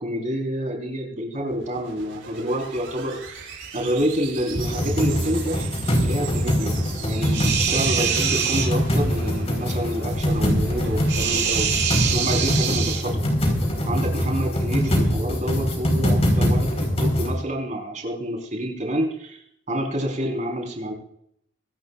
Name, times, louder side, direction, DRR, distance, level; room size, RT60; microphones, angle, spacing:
voice 1, 0.0-3.5 3.7-5.7 6.0-6.8 7.0-13.2 13.9-19.4 19.7-20.9, equal, 40° right, 2 dB, 4.7 m, -28 dB
sound 1, 1.4-13.7, right 4 dB, 90° right, 7.6 m, -39 dB
sound 2, 4.5-17.3, equal, 35° left, 4.7 m, -23 dB
sound 3, 7.3-8.7 11.1-13.0 14.8-14.9, right 8 dB, 60° right, 6.6 m, -24 dB
26.0 x 12.5 x 2.6 m, 0.70 s
head